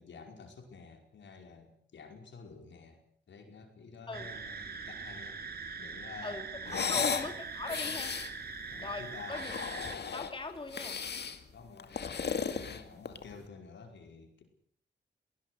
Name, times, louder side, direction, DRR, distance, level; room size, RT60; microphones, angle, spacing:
voice 1, 0.0-5.4 5.8-7.1 8.7-9.6 11.5-14.4, left 4 dB, 80° left, 4 dB, 5.2 m, -50 dB
sound 1, 4.1-10.0, right 5 dB, 60° right, 2.6 m, -42 dB
voice 2, 6.2-8.2 8.8-9.5 10.1-11.0, left 2 dB, 30° left, 5 dB, 2.9 m, -40 dB
sound 2, 6.7-7.3 7.6-8.3 9.2-10.3 10.7-11.4 11.8-13.3, left 6 dB, 65° left, 2.1 m, -35 dB
21.5 x 18.5 x 8.1 m, 0.64 s
cardioid pair, 85°, 18 cm